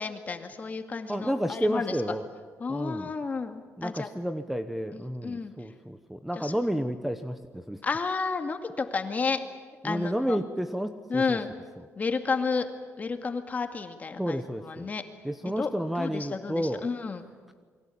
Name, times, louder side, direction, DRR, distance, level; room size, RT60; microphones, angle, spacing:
voice 1, 0.0-2.0 2.6-4.1 4.9-5.5 6.4-6.5 7.8-9.4 9.8-10.4 11.1-11.5 12.0-12.7 13.0-15.0 15.4-15.7 16.0-17.2, left 4 dB, 30° left, 6 dB, 2.2 m, -31 dB
voice 2, 1.1-2.3 2.7-3.1 3.8-7.8 9.8-11.4 14.2-14.9 15.2-16.8, equal, 5° right, 9 dB, 1.0 m, -31 dB
28.5 x 22.5 x 8.6 m, 1.5 s
cardioid pair, 140°, 5 cm